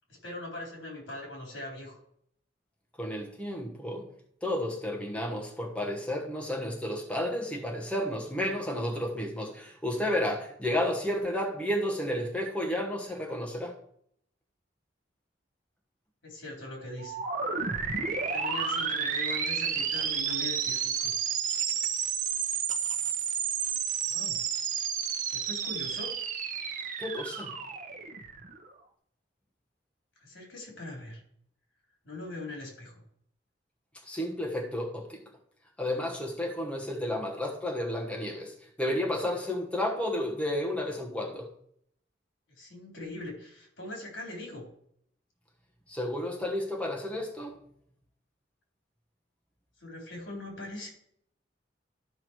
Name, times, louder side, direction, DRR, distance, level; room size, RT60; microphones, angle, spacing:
voice 1, 0.1-2.0 16.2-17.2 18.3-21.2 24.1-24.4 25.3-26.1 30.2-31.2 32.0-33.0 42.5-44.7 49.8-50.9, left 2 dB, 75° left, 0 dB, 4.0 m, -41 dB
voice 2, 3.0-4.1 4.4-13.8 27.0-27.6 34.0-35.2 35.8-41.5 45.9-47.6, left 1 dB, 5° left, 0 dB, 1.2 m, -32 dB
sound 1, 17.0-28.7, right 7 dB, 45° right, 0.9 m, -31 dB
12.5 x 5.8 x 4.6 m, 0.68 s
head